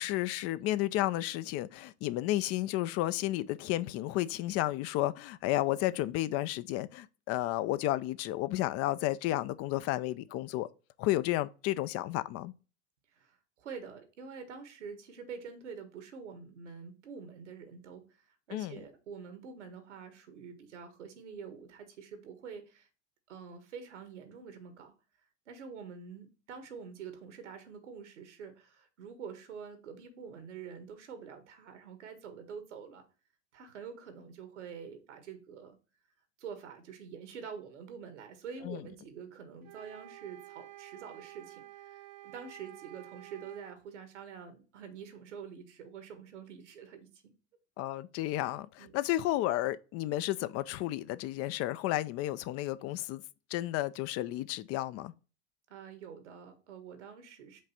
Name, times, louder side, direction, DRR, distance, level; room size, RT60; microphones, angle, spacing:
voice 1, 0.0-10.7 11.0-12.5 18.5-18.8 38.6-38.8 47.8-53.2 53.5-55.1, left 15 dB, 45° left, 0.5 m, -32 dB
voice 2, 13.1-22.9 23.3-24.9 25.5-33.0 33.5-35.8 36.4-47.1 48.8-49.0 55.7-57.6, right 6 dB, 90° right, 1.6 m, -46 dB
sound 1, 39.6-43.8, right 16 dB, 60° right, 0.7 m, -51 dB
5.3 x 3.3 x 5.6 m
hypercardioid pair, 100°, 34 cm